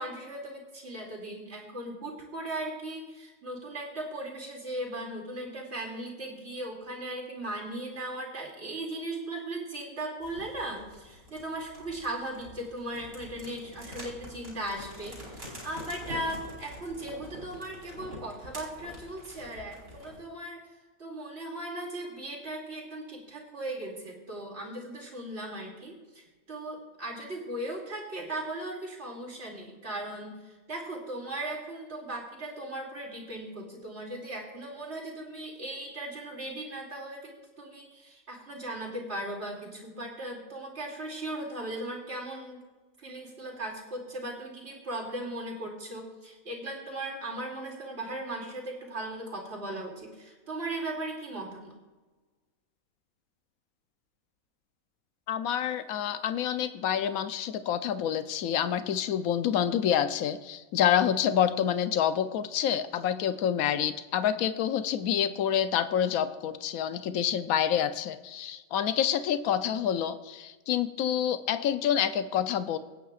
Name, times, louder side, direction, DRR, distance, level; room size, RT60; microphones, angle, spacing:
voice 1, 0.0-20.6 21.0-42.6 43.0-51.8, right 1 dB, 50° right, -1 dB, 2.8 m, -38 dB
sound 1, 10.2-20.2, left 1 dB, 70° right, 4.8 m, -46 dB
voice 2, 55.3-72.8, left 9 dB, 80° left, 10 dB, 1.1 m, -27 dB
24.0 x 9.1 x 2.4 m, 1.2 s
omnidirectional pair, 1.5 m